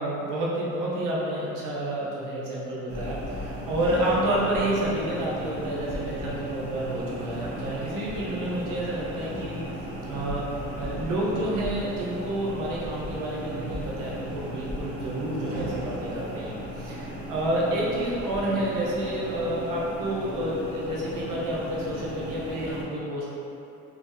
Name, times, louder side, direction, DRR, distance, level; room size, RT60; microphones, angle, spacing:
voice 1, 0.0-9.6 10.0-10.4 10.8-23.4, right 1 dB, 75° right, -6 dB, 0.8 m, -29 dB
sound 1, 2.9-22.8, equal, 45° right, 0.8 m, -36 dB
2.9 x 2.6 x 3.7 m, 2.9 s
cardioid pair, 90°, 32 cm